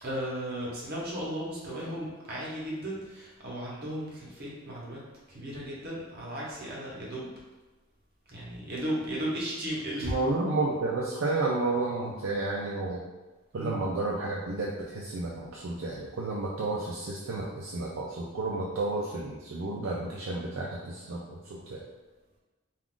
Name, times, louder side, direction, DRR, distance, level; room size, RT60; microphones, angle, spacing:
voice 1, 0.0-5.0 5.3-7.3 8.3-10.2 13.6-13.8, equal, 50° right, -5 dB, 0.8 m, -35 dB
voice 2, 10.0-13.0 13.5-21.4 21.7-21.8, right 2 dB, 65° right, -5 dB, 0.4 m, -31 dB
2.4 x 2.3 x 3.6 m, 1.2 s
head